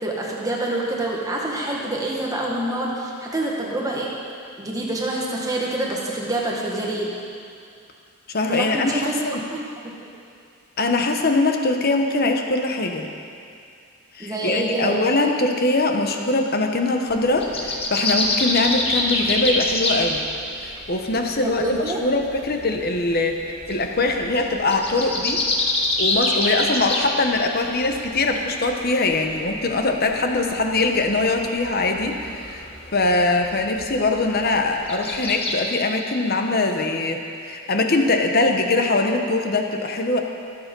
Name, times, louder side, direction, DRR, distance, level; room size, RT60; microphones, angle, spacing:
voice 1, 0.0-4.1 4.6-7.2 8.5-9.3 9.5-10.1 14.2-15.1 21.4-22.0, right 1 dB, 15° right, -3 dB, 1.6 m, -26 dB
voice 2, 8.3-9.4 10.8-13.1 14.1-20.3 20.6-23.4 23.7-25.4 26.0-32.6 32.9-40.2, left 2 dB, 45° left, 4 dB, 1.0 m, -22 dB
sound 1, 17.1-35.5, left 2 dB, 30° left, 1.5 m, -28 dB
22.5 x 7.9 x 5.4 m, 2.4 s
head